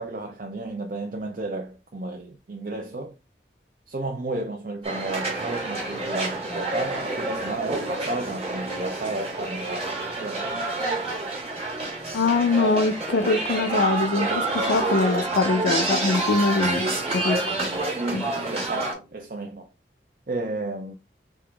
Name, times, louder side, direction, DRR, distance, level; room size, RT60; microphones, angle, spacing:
voice 1, 0.0-3.2 3.9-10.6 17.9-19.7 20.3-20.9, right 2 dB, 50° right, 0.5 m, -32 dB
sound 1, 4.8-18.9, right 2 dB, 35° right, 1.2 m, -28 dB
voice 2, 12.1-17.4 18.1-18.2, left 3 dB, 80° left, 0.5 m, -23 dB
3.6 x 2.9 x 3.3 m
head